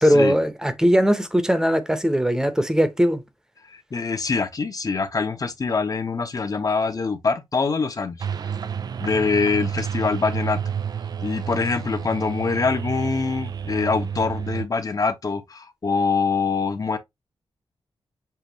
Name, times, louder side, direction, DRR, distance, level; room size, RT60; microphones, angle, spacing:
voice 1, 0.0-3.2, equal, 5° right, 0.9 m, -19 dB
voice 2, 3.9-8.1 9.0-10.6 11.2-17.0, left 4 dB, 40° left, 1.0 m, -24 dB
sound 1, 8.2-14.7, right 7 dB, 45° right, 0.3 m, -30 dB
7.1 x 2.5 x 2.9 m
cardioid pair, 85°, 10 cm